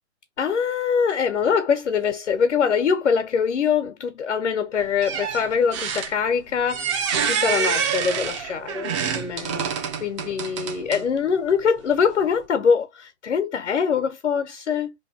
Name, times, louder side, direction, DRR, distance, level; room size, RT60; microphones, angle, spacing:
voice 1, 0.4-9.7 10.0-14.9, left 6 dB, 85° left, 1.2 m, -23 dB
sound 1, 4.8-11.2 11.9-12.0, right 7 dB, 25° right, 0.7 m, -27 dB
3.3 x 2.8 x 4.1 m
hypercardioid pair, 150°, 35 cm